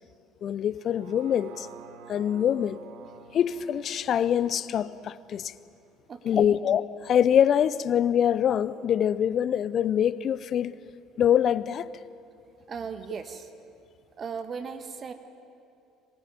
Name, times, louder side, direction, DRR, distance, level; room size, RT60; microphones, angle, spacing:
voice 1, 0.4-1.7 2.1-2.8 3.3-5.5 6.2-10.8 11.2-11.9, left 9 dB, 50° left, 0.7 m, -24 dB
sound 1, 0.8-6.9 7.3-7.4, right 7 dB, 70° right, 1.4 m, -50 dB
voice 2, 6.1-6.6 12.7-13.5 14.2-15.1, right 6 dB, 40° right, 1.5 m, -37 dB
23.0 x 15.5 x 9.7 m
hypercardioid pair, 60°, 0 cm